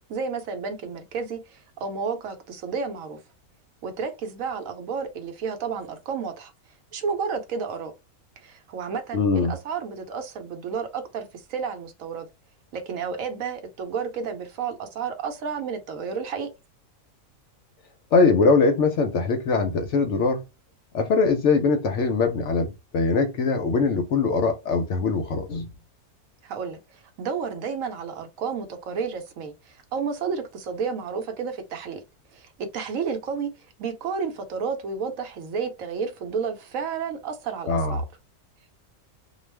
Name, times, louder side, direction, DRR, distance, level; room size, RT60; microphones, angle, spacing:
voice 1, 0.1-3.2 3.8-6.5 6.9-7.9 8.4-12.3 12.7-16.5 26.4-32.0 32.3-33.5 33.8-38.0, right 5 dB, 70° right, 1.0 m, -31 dB
voice 2, 9.1-9.5 18.1-20.4 20.9-25.7 37.7-38.0, left 4 dB, 65° left, 0.8 m, -22 dB
2.3 x 2.3 x 3.2 m
omnidirectional pair, 1.6 m